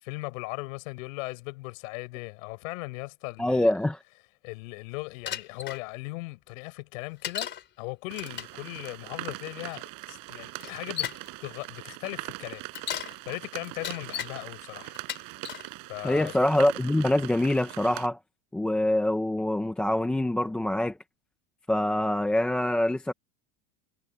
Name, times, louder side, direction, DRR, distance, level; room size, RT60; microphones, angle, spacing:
voice 1, 0.0-3.7 4.4-7.5 7.8-11.1 11.4-12.6 13.2-15.0 15.9-16.3, left 25 dB, 65° left, 6.4 m, -38 dB
voice 2, 3.4-4.0 16.0-18.2 18.5-21.0 21.7-23.1, left 1 dB, 5° left, 0.4 m, -25 dB
Bicycle, 5.3-5.8 7.2-7.6 8.1-8.6 9.7-9.8 10.6-11.3 12.6-13.2 13.6-14.3 14.9-15.7 16.3-16.7, left 9 dB, 25° left, 3.7 m, -35 dB
sound 1, 8.1-18.1, right 24 dB, 45° right, 6.1 m, -41 dB
supercardioid pair, 155°, 44 cm